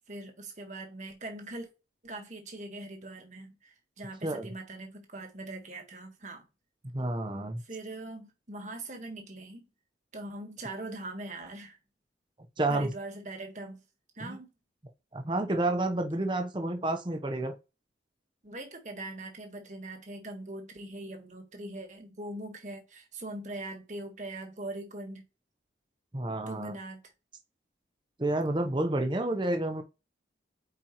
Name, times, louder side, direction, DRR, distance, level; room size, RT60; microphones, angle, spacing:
voice 1, 0.1-1.7 2.0-6.5 7.6-9.7 10.1-11.8 12.7-13.8 14.1-14.5 18.4-25.3 26.5-27.0, right 2 dB, 40° right, 1.4 m, -41 dB
voice 2, 6.8-7.6 12.6-12.9 14.2-14.4 15.1-17.6 26.1-26.7 28.2-29.8, right 2 dB, 25° right, 0.8 m, -30 dB
8.7 x 4.3 x 3.0 m
head